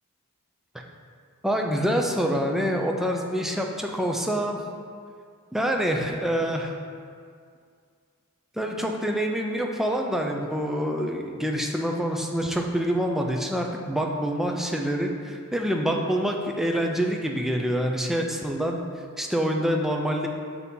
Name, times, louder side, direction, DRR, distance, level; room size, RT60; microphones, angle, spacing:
voice 1, 1.4-4.6 5.5-6.7 8.6-18.8 19.2-20.3, equal, ahead, 1 dB, 0.4 m, -26 dB
6.2 x 2.8 x 5.3 m, 2.2 s
head